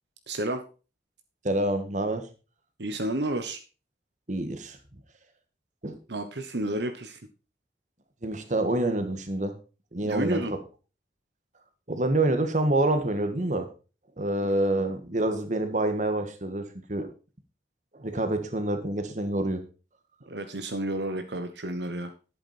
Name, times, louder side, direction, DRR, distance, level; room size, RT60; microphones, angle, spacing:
voice 1, 0.3-0.6 2.8-3.6 6.1-7.2 10.0-10.5 14.7-14.8 20.3-22.1, right 1 dB, 70° right, 7 dB, 1.1 m, -31 dB
voice 2, 1.4-2.3 4.3-4.8 5.8-6.0 8.2-9.5 9.9-10.6 11.9-13.7 14.2-17.1 17.9-19.6, right 1 dB, 45° right, 8 dB, 1.7 m, -27 dB
11.0 x 8.8 x 4.3 m, 0.33 s
head